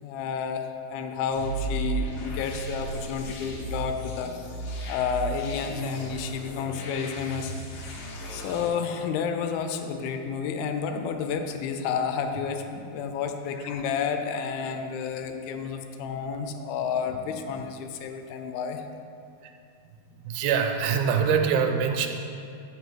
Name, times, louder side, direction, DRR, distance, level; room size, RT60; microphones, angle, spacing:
voice 1, 0.0-4.3 4.9-7.5 8.3-18.8, left 6 dB, 85° left, 6 dB, 2.4 m, -30 dB
sound 1, 1.3-8.7, right 2 dB, 65° left, 1.9 m, -35 dB
voice 2, 20.2-22.1, right 6 dB, 90° right, 5 dB, 2.6 m, -24 dB
8.2 x 5.7 x 4.5 m, 2.5 s
omnidirectional pair, 4.3 m